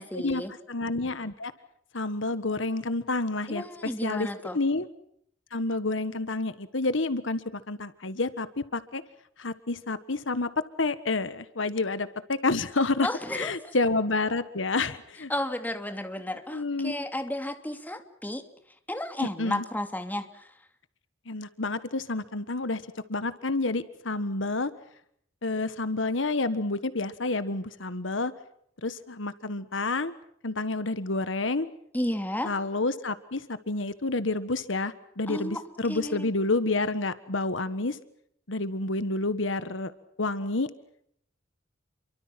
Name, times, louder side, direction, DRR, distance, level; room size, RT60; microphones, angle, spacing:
voice 1, 0.0-0.5 3.5-4.6 13.0-13.5 15.3-18.4 18.9-20.5 31.9-32.5 35.3-35.6 35.9-36.3, left 1 dB, 10° left, 7 dB, 2.6 m, -32 dB
voice 2, 0.7-1.5 1.9-3.6 4.0-4.3 4.5-4.9 5.5-9.0 9.4-10.5 10.8-15.3 16.5-16.9 19.2-19.6 21.3-22.8 23.1-24.7 25.4-28.3 28.8-30.1 30.4-31.7 32.4-38.0 38.5-39.9 40.2-40.7, left 3 dB, 70° left, 13 dB, 1.5 m, -29 dB
29.5 x 24.0 x 5.9 m, 0.70 s
head